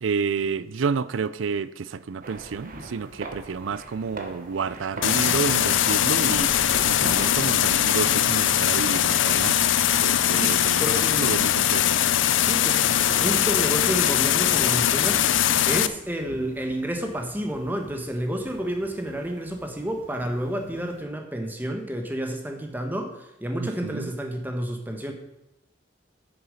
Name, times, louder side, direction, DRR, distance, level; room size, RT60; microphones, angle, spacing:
voice 1, 0.0-6.5 6.8-9.7 10.0-10.8 11.2-12.0 23.6-24.1, right 5 dB, 85° right, 0.5 m, -30 dB
sound 1, 2.2-21.0, right 2 dB, 45° right, 1.3 m, -43 dB
sound 2, 5.0-15.9, left 10 dB, 80° left, 0.5 m, -21 dB
voice 2, 10.3-11.3 12.4-15.2 15.6-25.1, right 1 dB, 10° right, 1.2 m, -30 dB
8.8 x 6.9 x 6.4 m
head